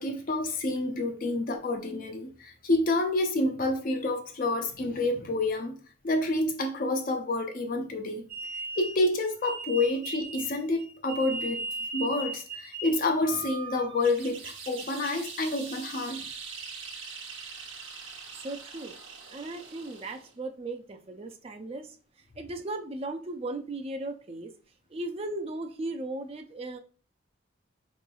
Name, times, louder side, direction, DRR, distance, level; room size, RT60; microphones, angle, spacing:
voice 1, 0.0-5.8 6.0-8.2 8.8-11.6 11.9-16.3, left 2 dB, 45° left, 0.4 m, -28 dB
sound 1, 8.3-14.3, right 3 dB, 25° left, 1.4 m, -38 dB
sound 2, 14.0-20.4, right 5 dB, 70° right, 0.8 m, -43 dB
voice 2, 18.3-19.0 19.3-22.0 22.4-24.5 24.9-26.8, right 2 dB, 30° right, 0.4 m, -37 dB
4.0 x 3.0 x 2.2 m
head